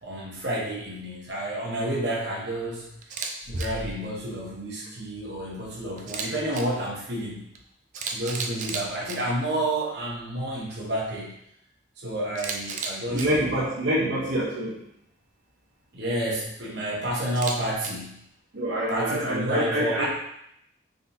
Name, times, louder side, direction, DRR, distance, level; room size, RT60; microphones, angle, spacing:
voice 1, 0.0-3.0 3.5-7.5 8.1-11.4 12.0-13.7 14.0-14.2 15.9-18.2 18.9-20.1, right 1 dB, 65° right, -4 dB, 1.1 m, -30 dB
Camera, 3.0-3.3 3.6-3.7 6.0-6.6 7.5-7.6 7.9-9.2 12.3-13.2 17.3-17.9, right 5 dB, 45° right, 0.4 m, -33 dB
voice 2, 13.1-14.8 18.5-20.1, equal, 90° right, -5 dB, 0.8 m, -26 dB
4.0 x 3.6 x 2.8 m, 0.75 s
head